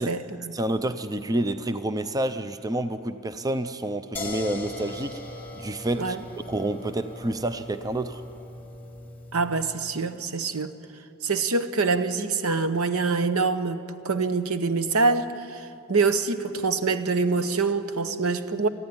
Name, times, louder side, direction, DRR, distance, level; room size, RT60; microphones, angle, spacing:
voice 1, 0.0-0.5 6.0-6.2 9.3-10.7 11.2-18.7, right 4 dB, 70° right, 0.9 m, -25 dB
voice 2, 0.5-5.2 5.6-6.2 6.5-8.2, right 1 dB, 15° right, 0.5 m, -28 dB
sound 1, 4.1-10.0, left 2 dB, 10° left, 2.1 m, -39 dB
19.5 x 14.5 x 9.7 m
head